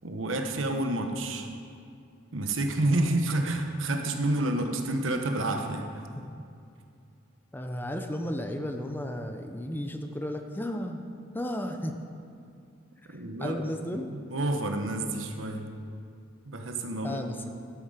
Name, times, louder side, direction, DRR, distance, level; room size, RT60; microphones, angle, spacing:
voice 1, 0.0-1.5 2.3-6.1 13.1-13.6 13.9-15.7 16.5-17.2, right 1 dB, 90° right, 5 dB, 1.1 m, -29 dB
voice 2, 7.5-11.0 11.3-11.9 13.0-14.1 17.0-17.4, left 1 dB, 10° left, 5 dB, 0.6 m, -34 dB
12.0 x 9.3 x 5.0 m, 2.4 s
head